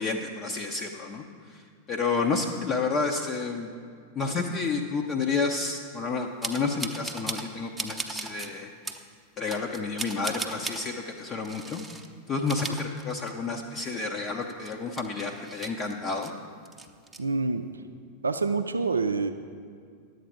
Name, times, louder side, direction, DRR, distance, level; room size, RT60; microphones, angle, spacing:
voice 1, 0.0-3.7 4.1-8.7 9.4-11.8 12.3-16.3, left 4 dB, 30° left, 1 dB, 0.7 m, -30 dB
sound 1, 6.4-7.5 7.8-8.5 8.8-9.0 9.5-10.8 11.4-12.1 12.4-13.6 13.9-14.0 14.4-16.3 16.6-17.2, right 3 dB, 5° right, 0.7 m, -37 dB
voice 2, 17.2-17.7 18.2-19.3, right 4 dB, 75° right, 7 dB, 0.4 m, -26 dB
10.5 x 8.0 x 4.9 m, 2.2 s
figure-of-eight pair, 90°, 0 cm